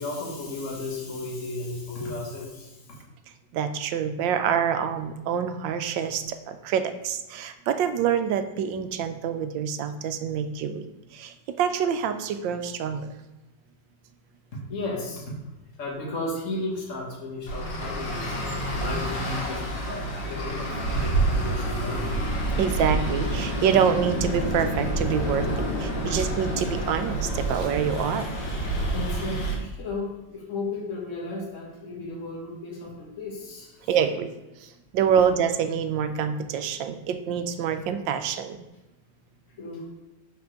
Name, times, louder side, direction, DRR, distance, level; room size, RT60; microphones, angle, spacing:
voice 1, 0.0-3.0 14.5-15.3 15.8-22.1 26.1-26.2 28.9-33.9 39.6-39.9, left 2 dB, 45° left, -3 dB, 2.0 m, -34 dB
voice 2, 3.5-10.8 11.1-13.1 22.6-28.3 33.9-34.3 34.6-38.6, right 7 dB, 85° right, 9 dB, 1.4 m, -26 dB
Traffic noise roadway noise, 17.5-29.5, right 1 dB, 70° left, 2.2 m, -28 dB
5.9 x 4.5 x 6.3 m, 1.0 s
omnidirectional pair, 2.0 m